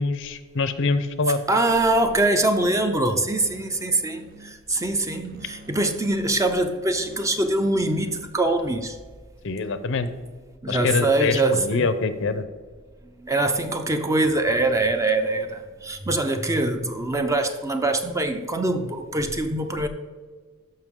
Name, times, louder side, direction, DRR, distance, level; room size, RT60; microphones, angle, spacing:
voice 1, 0.0-1.4 9.4-10.1 10.7-12.4, left 3 dB, 65° left, 0.7 m, -24 dB
voice 2, 1.5-9.0 10.6-11.9 13.2-19.9, right 2 dB, 15° right, 0.7 m, -23 dB
Musical instrument, 1.5-9.0, right 3 dB, 50° right, 0.8 m, -48 dB
13.0 x 5.7 x 3.7 m
head